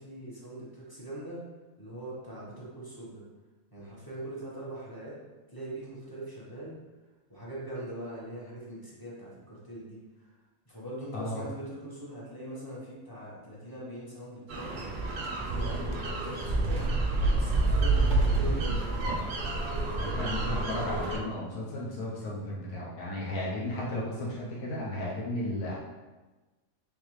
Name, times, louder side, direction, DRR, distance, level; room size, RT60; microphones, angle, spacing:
voice 1, 0.0-1.4 1.8-3.2 3.7-5.2 5.5-6.7 7.3-10.0 10.7-15.0 15.4-16.8 17.3-19.2, right 1 dB, 20° left, -7 dB, 0.9 m, -41 dB
voice 2, 11.1-11.4 20.0-25.8, left 1 dB, 85° left, -5 dB, 1.3 m, -34 dB
sound 1, 14.5-21.2, right 2 dB, 60° right, 0.5 m, -28 dB
3.6 x 3.5 x 3.1 m, 1.2 s
omnidirectional pair, 1.5 m